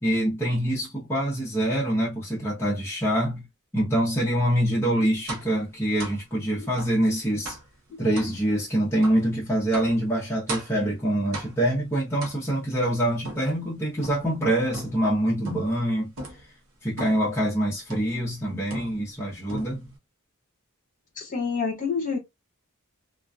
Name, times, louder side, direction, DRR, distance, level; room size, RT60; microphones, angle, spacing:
voice 1, 0.0-3.5 3.7-7.6 8.0-16.1 16.8-19.9, right 1 dB, 10° left, 0.6 m, -25 dB
sound 1, 5.3-5.6 6.0-6.2 6.8-7.0 7.4-7.7 8.1-8.4 9.0-9.2 9.7-10.0 10.5-10.8 11.3-11.7 12.2-12.7 13.2-14.3 14.7-15.1 15.4-15.8 16.2-16.5 17.0-17.3 17.9-18.2 18.7-19.2 19.5-20.0, right 2 dB, 65° right, 0.8 m, -37 dB
voice 2, 21.2-22.2, left 5 dB, 40° left, 1.1 m, -28 dB
2.4 x 2.2 x 2.3 m
head